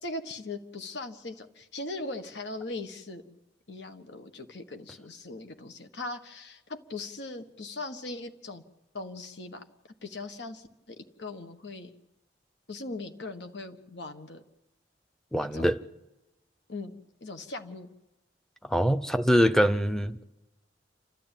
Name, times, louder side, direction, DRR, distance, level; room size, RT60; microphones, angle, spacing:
voice 1, 0.0-3.4 3.7-8.6 8.9-9.6 10.0-11.9 12.7-14.4 15.5-15.6 16.7-16.9 17.2-17.9, left 2 dB, 75° left, 1.5 m, -39 dB
voice 2, 15.3-15.8 18.7-20.2, equal, 5° left, 0.7 m, -24 dB
29.5 x 13.0 x 9.1 m
head